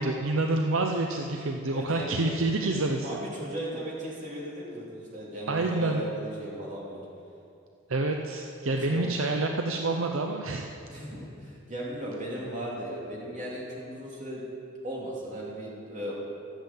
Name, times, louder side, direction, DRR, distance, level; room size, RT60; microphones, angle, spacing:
voice 1, 0.0-3.2 5.5-6.1 7.9-10.7, right 2 dB, 65° right, 3 dB, 0.6 m, -28 dB
voice 2, 1.7-2.2 3.0-7.0 8.9-9.1 10.9-14.4 14.8-16.1, right 1 dB, 35° right, -5 dB, 2.9 m, -36 dB
13.0 x 7.3 x 7.2 m, 2.6 s
head